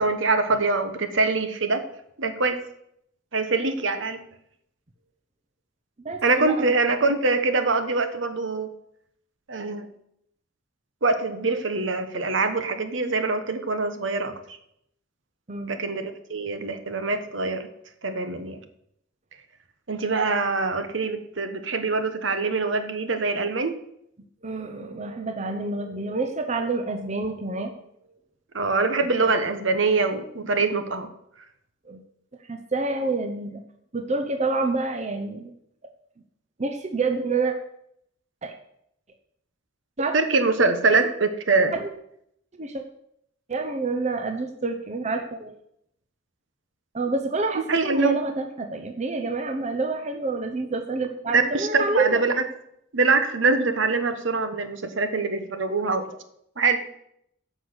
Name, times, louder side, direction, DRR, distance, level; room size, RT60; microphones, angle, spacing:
voice 1, 0.0-1.8 2.2-2.6 3.3-4.2 6.2-8.7 9.5-9.9 11.0-14.3 15.7-17.7 18.0-18.6 19.9-23.8 28.5-31.1 40.1-41.7 47.7-48.2 51.3-52.3 52.9-56.2 56.6-56.9, right 3 dB, 70° right, 9 dB, 1.2 m, -24 dB
voice 2, 6.0-6.7 15.5-15.8 16.7-16.9 24.4-27.7 29.2-29.3 31.9-32.0 32.5-33.6 33.9-35.5 36.6-37.5 38.4-38.5 40.0-40.1 41.7-41.9 42.5-42.8 43.5-45.5 46.9-52.2, right 3 dB, 35° right, 5 dB, 0.8 m, -28 dB
10.0 x 6.4 x 8.0 m, 0.75 s
head